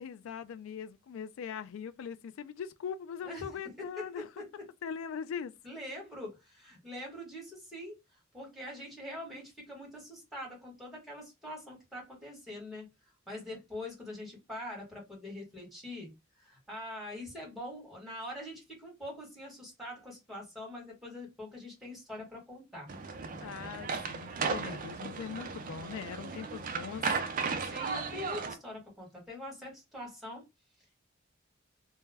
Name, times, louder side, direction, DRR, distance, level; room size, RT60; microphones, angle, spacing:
voice 1, 0.0-4.3 4.8-5.5 23.4-27.0, left 7 dB, 75° left, 0.3 m, -41 dB
voice 2, 5.6-7.9 8.3-12.9 13.3-16.1 16.4-22.9 24.6-24.7 26.3-26.4 27.6-30.5, left 1 dB, ahead, 1.2 m, -44 dB
sound 1, 22.9-28.6, right 5 dB, 40° right, 0.4 m, -35 dB
2.2 x 2.1 x 3.3 m
head